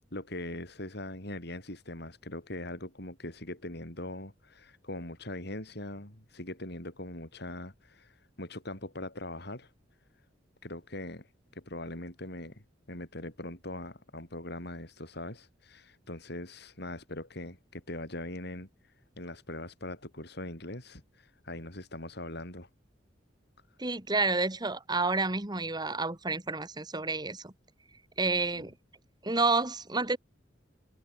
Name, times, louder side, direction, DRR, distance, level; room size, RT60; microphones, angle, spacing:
voice 1, 0.1-9.7 10.6-11.3 11.5-18.7 19.2-22.7 28.5-28.7, left 1 dB, 60° left, 6.8 m, -41 dB
voice 2, 23.8-27.5 28.2-28.7 29.2-30.2, right 3 dB, 20° right, 2.1 m, -29 dB
head